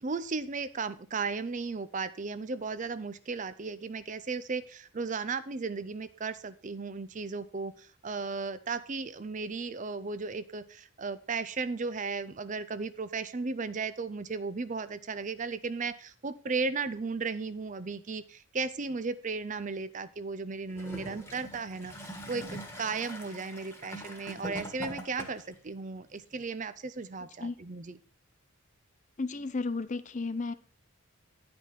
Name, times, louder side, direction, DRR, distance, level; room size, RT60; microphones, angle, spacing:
voice 1, 0.0-28.0, right 4 dB, 35° right, 0.5 m, -35 dB
Gurgling / Toilet flush, 20.7-25.6 26.4-26.5, right 1 dB, 10° left, 1.4 m, -42 dB
voice 2, 29.2-30.5, left 3 dB, 35° left, 0.5 m, -33 dB
10.0 x 5.2 x 5.7 m
head